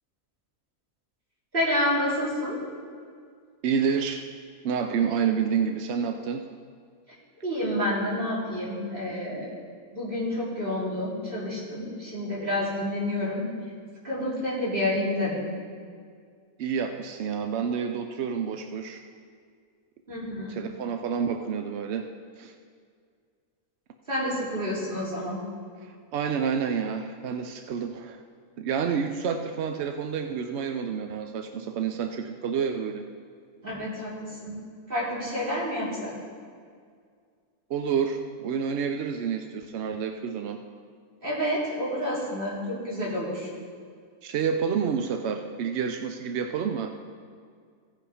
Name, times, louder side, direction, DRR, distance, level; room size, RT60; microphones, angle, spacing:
voice 1, 1.5-2.6 7.4-9.5 9.9-13.4 14.0-15.4 20.1-20.6 24.1-25.4 33.6-34.5 34.9-36.1 41.2-43.5, left 1 dB, 35° right, -7 dB, 3.0 m, -29 dB
voice 2, 3.6-4.2 4.6-6.5 16.6-19.0 20.5-22.1 22.4-22.5 25.8-28.2 28.6-33.0 37.7-40.6 44.2-47.0, right 6 dB, 65° right, 6 dB, 0.6 m, -29 dB
16.0 x 5.6 x 4.9 m, 2.1 s
omnidirectional pair, 1.6 m